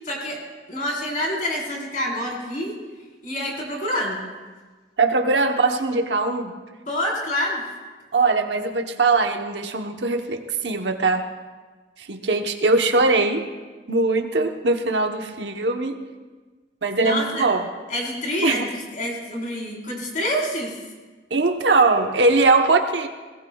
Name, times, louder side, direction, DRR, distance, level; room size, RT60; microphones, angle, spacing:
voice 1, 0.0-0.4 0.7-2.7 3.2-4.2 6.9-7.6 17.0-17.4 17.9-20.8, left 1 dB, 50° left, -2 dB, 4.1 m, -27 dB
voice 2, 5.0-6.5 8.1-11.2 12.1-13.5 13.9-16.0 16.8-17.7 18.4-18.7 21.3-23.1, right 3 dB, 80° right, 4 dB, 1.0 m, -21 dB
21.5 x 17.5 x 2.3 m, 1.3 s
head